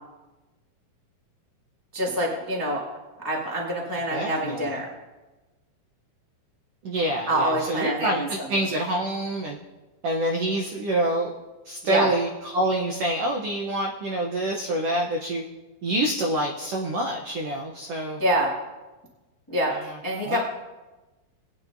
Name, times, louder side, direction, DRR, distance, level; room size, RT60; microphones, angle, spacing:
voice 1, 1.9-2.8 3.2-4.9 7.3-8.5 11.8-12.1 18.2-18.5 19.5-20.4, right 1 dB, 15° left, -3 dB, 0.7 m, -26 dB
voice 2, 4.1-4.7 6.8-9.6 10.0-11.4 11.6-15.4 15.8-18.2 19.7-20.0 20.2-20.4, right 1 dB, 75° right, 1 dB, 1.4 m, -27 dB
20.5 x 9.2 x 2.6 m, 1.2 s
omnidirectional pair, 3.8 m